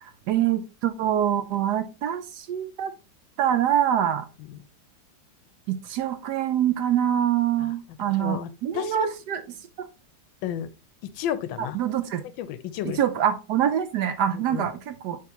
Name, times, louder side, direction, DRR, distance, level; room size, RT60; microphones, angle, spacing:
voice 1, 0.0-2.9 3.4-4.3 5.8-9.4 9.8-9.9 11.6-12.2 12.9-15.2, right 10 dB, 75° right, 1.0 m, -25 dB
voice 2, 8.1-9.1 10.4-10.7 11.2-11.8 12.4-13.0 14.3-14.7, left 10 dB, 85° left, 1.4 m, -32 dB
9.4 x 3.5 x 2.9 m
omnidirectional pair, 2.1 m